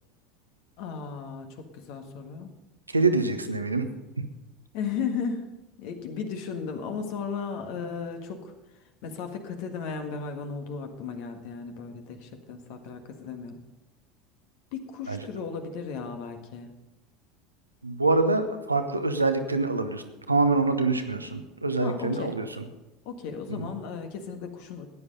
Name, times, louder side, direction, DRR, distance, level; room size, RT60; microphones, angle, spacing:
voice 1, 0.8-2.5 4.7-5.5 5.8-8.5 9.0-13.6 14.7-16.7 21.8-22.4 23.1-24.9, left 6 dB, 60° left, 6 dB, 1.6 m, -35 dB
voice 2, 2.9-3.9 4.2-4.3 15.1-15.2 17.8-22.7 23.5-23.7, right 3 dB, 90° right, 8 dB, 0.9 m, -25 dB
14.0 x 9.7 x 5.3 m, 1.0 s
figure-of-eight pair, 75°, 0 cm